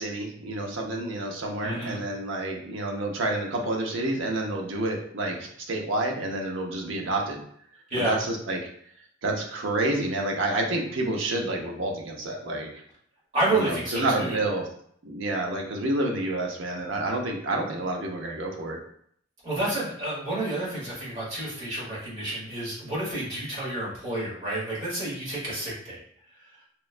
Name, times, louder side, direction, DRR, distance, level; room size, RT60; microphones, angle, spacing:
voice 1, 0.0-7.4 8.0-8.7 9.2-12.7 13.5-14.7 15.0-18.8, right 2 dB, 70° right, 1 dB, 0.6 m, -29 dB
voice 2, 1.6-2.0 7.9-8.2 13.3-14.4 19.4-26.0, right 2 dB, 35° right, -6 dB, 1.2 m, -29 dB
3.0 x 2.2 x 2.4 m, 0.65 s
head